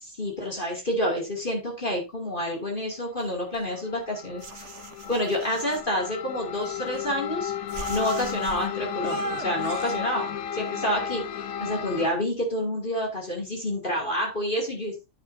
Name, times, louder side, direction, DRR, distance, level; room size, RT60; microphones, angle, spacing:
voice 1, 0.0-4.7 5.1-15.1, equal, 35° left, -1 dB, 2.8 m, -29 dB
sound 1, 3.2-4.0 4.4-5.8 6.6-7.3 7.7-8.7 9.0-10.0, right 6 dB, 60° right, 1.3 m, -39 dB
sound 2, 3.5-12.1, left 8 dB, 80° left, 1.2 m, -33 dB
10.0 x 9.6 x 2.7 m, 0.24 s
omnidirectional pair, 1.4 m